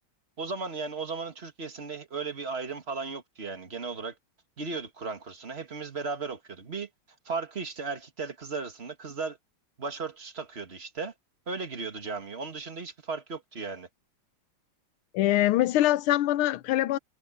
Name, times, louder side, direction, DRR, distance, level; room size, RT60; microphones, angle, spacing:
voice 1, 0.4-4.2 4.6-6.9 7.3-9.4 9.8-11.1 11.5-13.9, right 4 dB, 30° right, 1.9 m, -36 dB
voice 2, 15.1-17.0, left 14 dB, 85° left, 1.6 m, -23 dB
omnidirectional pair, 2.3 m